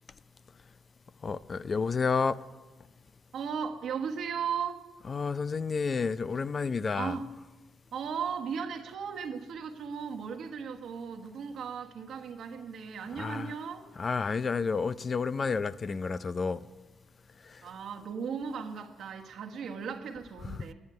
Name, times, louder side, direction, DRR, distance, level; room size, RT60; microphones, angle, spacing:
voice 1, 1.2-2.4 5.0-7.2 13.1-13.6 14.0-16.6 17.4-17.6 20.4-20.6, left 5 dB, 35° left, 0.4 m, -30 dB
voice 2, 3.3-4.8 7.0-7.2 7.9-13.9 17.6-20.7, right 6 dB, 65° right, 1.3 m, -36 dB
9.5 x 8.9 x 9.6 m
cardioid pair, 90°, 0 cm